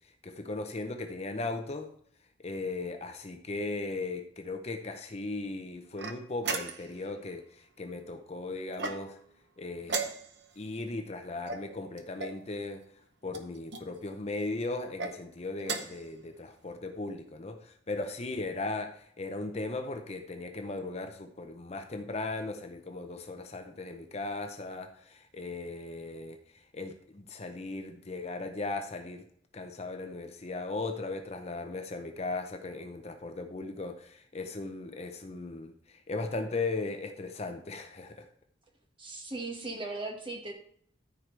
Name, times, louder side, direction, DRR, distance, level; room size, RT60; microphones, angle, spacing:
voice 1, 0.2-1.9 2.4-9.2 9.6-10.1 10.6-12.8 13.2-26.4 26.7-29.2 29.5-38.3, left 3 dB, 35° left, 6 dB, 0.6 m, -37 dB
sound 1, 6.0-7.0 8.7-9.3 9.8-10.6 11.5-12.4 13.3-13.9 14.8-15.1 15.6-16.1, right 4 dB, 65° right, 0.9 m, -37 dB
voice 2, 39.0-40.5, right 2 dB, 30° right, 0 dB, 1.6 m, -38 dB
14.0 x 4.7 x 3.3 m, 0.64 s
head